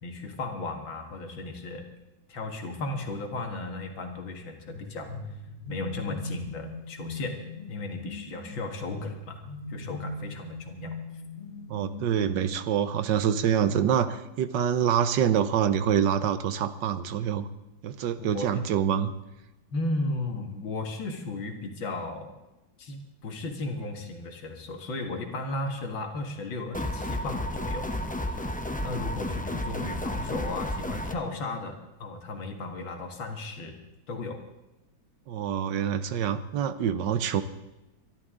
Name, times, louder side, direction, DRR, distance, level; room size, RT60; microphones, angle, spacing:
voice 1, 0.0-1.9 2.3-5.1 5.7-7.4 7.7-9.4 9.7-10.9 18.2-18.6 19.7-22.3 22.8-27.9 28.3-28.5 28.8-33.8 34.1-34.4, left 2 dB, 85° left, 4 dB, 2.6 m, -35 dB
sound 1, 4.7-12.3, left 2 dB, 55° right, 6.9 m, -40 dB
voice 2, 11.7-17.5 17.8-19.1 35.3-37.4, right 8 dB, 70° right, 12 dB, 1.4 m, -26 dB
sound 2, 26.7-31.1, left 1 dB, 10° left, 0.5 m, -32 dB
24.0 x 12.0 x 3.8 m, 0.99 s
omnidirectional pair, 2.1 m